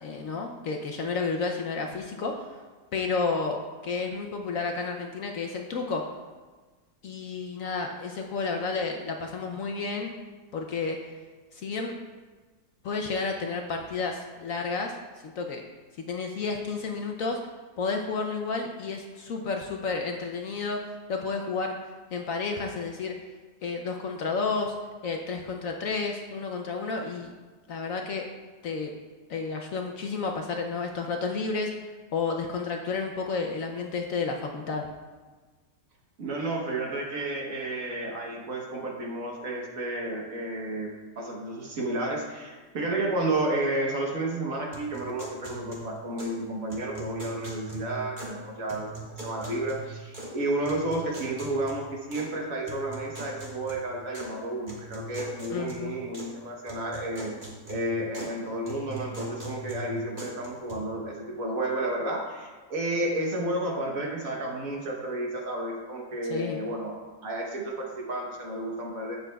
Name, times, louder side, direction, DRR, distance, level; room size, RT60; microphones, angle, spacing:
voice 1, 0.0-2.6 2.9-6.0 7.0-10.1 10.5-11.0 11.5-11.9 12.8-15.0 15.2-15.6 16.0-17.4 17.8-21.8 22.1-23.2 23.6-24.7 25.0-27.3 27.7-28.3 28.6-28.9 29.3-31.7 32.1-34.8 55.5-56.0 66.3-66.6, left 4 dB, 65° left, 2 dB, 0.9 m, -31 dB
voice 2, 36.2-48.9 49.2-57.3 57.7-69.2, right 1 dB, 55° right, -1 dB, 1.4 m, -31 dB
sound 1, 44.7-46.4 46.7-48.4 48.7-50.4 50.7-52.3 52.7-54.3 54.7-56.4 56.7-58.4 58.7-60.7, right 2 dB, 30° right, 1.6 m, -41 dB
10.5 x 7.3 x 2.3 m, 1.4 s
omnidirectional pair, 1.8 m